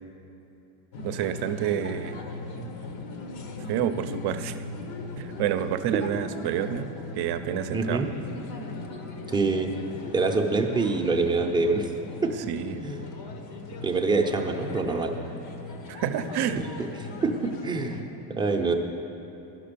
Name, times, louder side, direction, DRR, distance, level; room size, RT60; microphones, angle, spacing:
sound 1, 0.9-18.0, left 3 dB, 70° left, 1.2 m, -38 dB
voice 1, 1.0-2.2 3.7-4.6 5.2-8.0 12.4-12.8 15.9-16.7, right 10 dB, 55° right, 10 dB, 0.6 m, -29 dB
voice 2, 7.7-8.1 9.3-9.7 10.1-11.9 12.2-12.3 12.8-13.0 13.8-15.1 16.6-16.7 17.2-18.0 18.3-18.7, right 3 dB, 10° right, 2 dB, 0.6 m, -25 dB
11.0 x 6.0 x 6.8 m, 3.0 s
cardioid pair, 135°, 46 cm